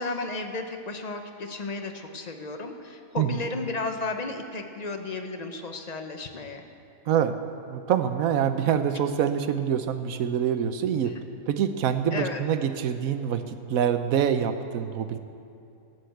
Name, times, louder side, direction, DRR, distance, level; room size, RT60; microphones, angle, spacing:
voice 1, 0.0-6.6 11.0-11.1 12.1-12.4, left 3 dB, 35° left, 6 dB, 0.9 m, -33 dB
voice 2, 7.7-11.1 11.5-15.2, right 8 dB, 75° right, 10 dB, 1.2 m, -25 dB
13.0 x 9.5 x 7.8 m, 2.6 s
omnidirectional pair, 1.5 m